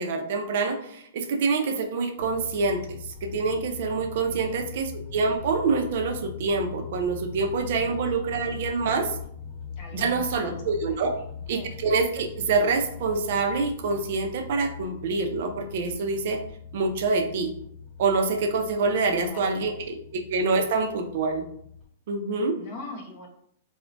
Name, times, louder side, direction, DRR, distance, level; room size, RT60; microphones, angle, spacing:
voice 1, 0.0-9.1 9.9-11.1 11.5-16.4 16.7-17.5 18.0-21.4 22.1-22.6, right 4 dB, 50° right, 4 dB, 0.4 m, -26 dB
sound 1, 2.2-21.8, left 6 dB, 10° right, 0.9 m, -41 dB
voice 2, 4.2-4.6 7.7-8.2 9.8-11.2 11.5-11.7 19.1-19.8 22.6-23.3, left 2 dB, 30° left, 1 dB, 0.6 m, -43 dB
4.3 x 2.0 x 2.5 m, 0.68 s
supercardioid pair, 175°, 0 cm